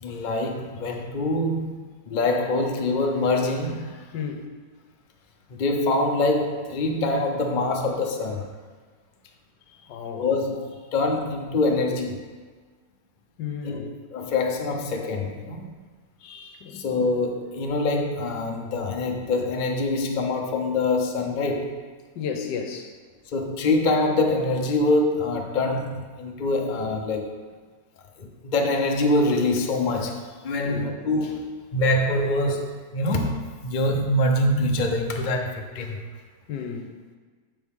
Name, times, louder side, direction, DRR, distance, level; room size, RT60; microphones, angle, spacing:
voice 1, 0.0-4.0 5.5-8.5 10.1-12.2 13.6-13.8 14.1-15.7 16.2-21.8 23.3-27.3 28.2-36.0, left 2 dB, 50° left, 2 dB, 0.5 m, -25 dB
voice 2, 4.1-4.5 9.9-10.3 13.4-13.9 16.6-16.8 22.1-23.0 30.6-30.9 36.5-36.9, left 6 dB, 75° left, 4 dB, 1.4 m, -33 dB
8.5 x 6.5 x 3.6 m, 1.5 s
omnidirectional pair, 1.9 m